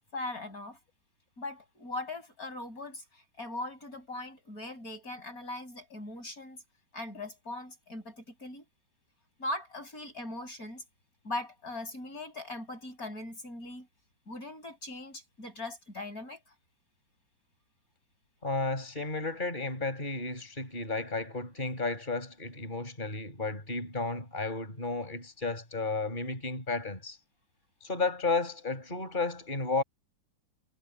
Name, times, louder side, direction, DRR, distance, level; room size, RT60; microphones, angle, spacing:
voice 1, 0.1-0.8 1.4-6.6 6.9-8.6 9.4-10.8 11.2-13.9 14.3-16.4, left 2 dB, 40° left, 8.0 m, -40 dB
voice 2, 18.4-27.2 27.8-29.8, left 3 dB, 20° left, 6.3 m, -33 dB
omnidirectional pair, 2.2 m